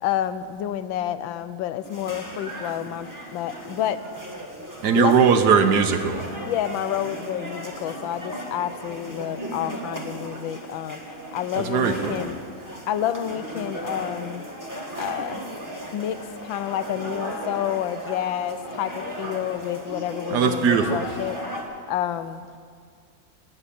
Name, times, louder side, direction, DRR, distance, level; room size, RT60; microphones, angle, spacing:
voice 1, 0.0-4.0 4.9-5.1 6.4-11.0 11.3-12.4 12.9-14.4 15.0-15.4 15.9-21.4 21.9-22.4, left 11 dB, 85° left, 13 dB, 1.4 m, -29 dB
sound 1, 1.8-21.6, right 1 dB, 10° right, 1.5 m, -36 dB
voice 2, 4.8-6.3 11.6-12.2 20.3-21.1, right 6 dB, 65° right, 8 dB, 1.3 m, -20 dB
19.0 x 7.0 x 8.4 m, 2.1 s
omnidirectional pair, 2.1 m